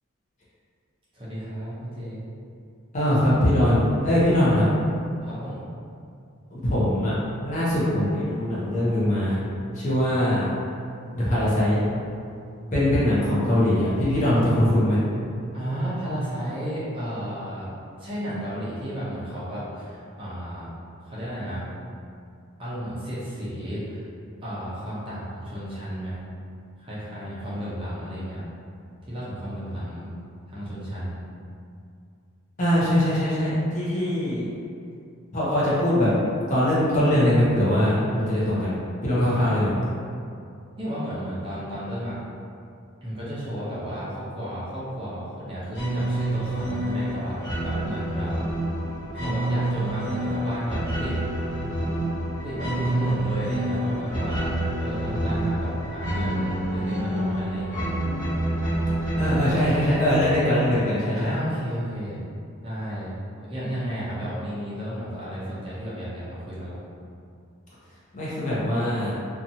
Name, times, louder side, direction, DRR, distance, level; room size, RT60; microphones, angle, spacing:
voice 1, 1.1-2.2 5.2-5.7 15.5-17.7 18.0-20.7 21.0-21.6 22.6-24.1 24.4-26.2 26.8-28.4 29.0-30.1 30.5-31.2 39.3-39.6 40.8-42.2 43.0-48.3 49.1-51.5 52.4-54.5 54.8-57.9 61.2-62.2 62.6-63.1 63.5-66.8, equal, 25° right, -10 dB, 0.6 m, -33 dB
voice 2, 2.9-4.6 6.5-7.1 7.4-9.4 9.7-10.5 11.1-11.8 12.7-15.0 32.6-34.5 35.3-36.1 36.5-38.7 39.0-39.7 59.2-61.3 68.1-69.2, left 1 dB, 35° left, -9 dB, 0.7 m, -22 dB
sound 1, 45.7-61.2, right 1 dB, 85° left, 1.0 m, -28 dB
2.7 x 2.3 x 2.6 m, 2.4 s
head